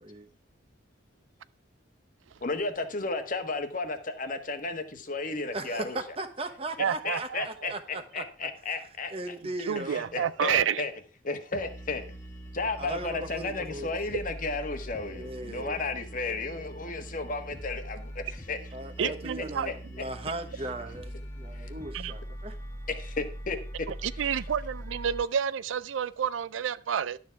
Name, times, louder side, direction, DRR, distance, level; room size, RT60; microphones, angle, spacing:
voice 1, 2.4-6.0 7.0-9.3 9.8-10.9 11.2-12.2 12.5-18.6 19.0-19.1 19.6-19.7 21.5-21.7 22.9-23.6, left 3 dB, 45° left, 1.4 m, -33 dB
voice 2, 5.5-8.5 9.1-10.1 12.8-13.9 15.1-15.8 18.7-22.6, right 1 dB, 30° right, 1.0 m, -38 dB
voice 3, 6.8-7.7 9.7-10.8 19.0-19.7 21.9-22.1 24.0-27.2, right 8 dB, 85° right, 0.4 m, -29 dB
sound 1, 11.5-25.2, right 1 dB, 15° left, 1.5 m, -42 dB
11.5 x 7.1 x 4.6 m
head